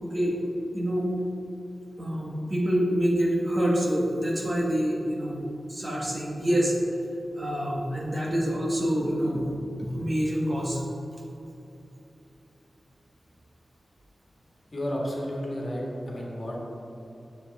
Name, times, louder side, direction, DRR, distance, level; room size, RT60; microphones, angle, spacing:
voice 1, 0.0-0.4 0.7-1.1 2.0-6.8 7.4-9.5 9.8-10.8, equal, 30° right, -3 dB, 1.4 m, -26 dB
voice 2, 14.7-16.6, equal, 35° left, -4 dB, 1.9 m, -32 dB
9.7 x 7.2 x 4.1 m, 2.9 s
wide cardioid pair, 125°, 0 cm